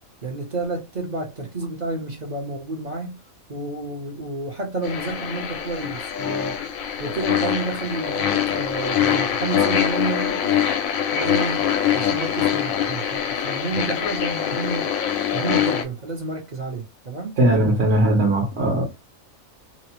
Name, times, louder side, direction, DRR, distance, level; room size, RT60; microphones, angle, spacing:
voice 1, 0.2-3.1 3.5-6.6 7.0-10.6 11.1-11.7 11.9-14.9 15.3-17.4, right 3 dB, 45° right, 0.6 m, -30 dB
sound 1, 4.8-15.8, left 9 dB, 80° left, 1.0 m, -24 dB
voice 2, 17.4-18.8, right 1 dB, 65° right, 1.2 m, -19 dB
2.8 x 2.0 x 2.8 m
omnidirectional pair, 1.4 m